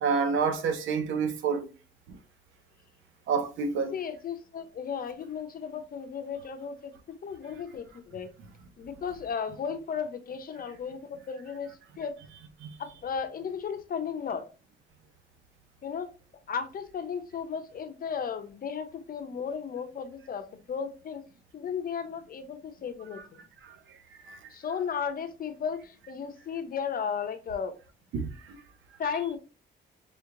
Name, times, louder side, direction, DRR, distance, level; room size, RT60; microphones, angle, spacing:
voice 1, 0.0-1.7 3.3-3.9 28.1-28.3, right 5 dB, 80° right, 0.8 m, -27 dB
voice 2, 3.9-6.9 7.2-8.3 8.8-12.2 12.8-14.4 15.8-16.1 16.5-21.2 21.5-23.4 24.5-27.7 29.0-29.4, left 6 dB, 45° left, 0.7 m, -35 dB
5.0 x 2.8 x 2.5 m
cardioid pair, 90°, 20 cm